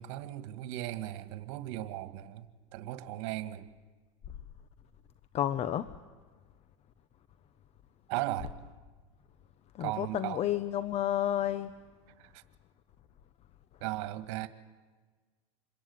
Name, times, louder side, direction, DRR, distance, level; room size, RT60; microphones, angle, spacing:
voice 1, 0.0-3.7 8.1-8.6 9.8-10.4 12.2-12.4 13.8-14.5, right 15 dB, 70° right, 11 dB, 1.9 m, -37 dB
voice 2, 5.3-5.9 9.8-11.7, left 11 dB, 45° left, 13 dB, 1.0 m, -30 dB
27.0 x 22.5 x 9.7 m, 1.4 s
supercardioid pair, 110°, 16 cm